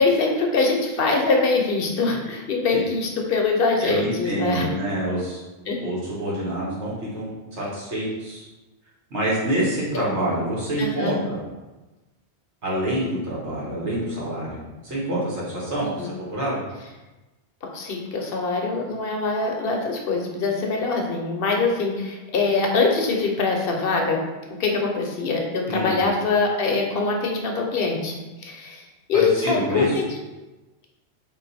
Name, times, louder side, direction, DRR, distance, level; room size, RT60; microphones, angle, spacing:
voice 1, 0.0-4.7 5.7-5.8 10.8-11.2 16.0-16.1 17.7-24.2 24.6-28.1 28.4-30.1, left 4 dB, 65° left, 1 dB, 0.9 m, -23 dB
voice 2, 3.8-5.4 5.8-8.5 9.1-11.4 12.6-16.6 25.7-26.0 29.1-30.0, right 1 dB, 85° right, -6 dB, 1.6 m, -26 dB
3.9 x 2.5 x 4.0 m, 1.1 s
omnidirectional pair, 1.1 m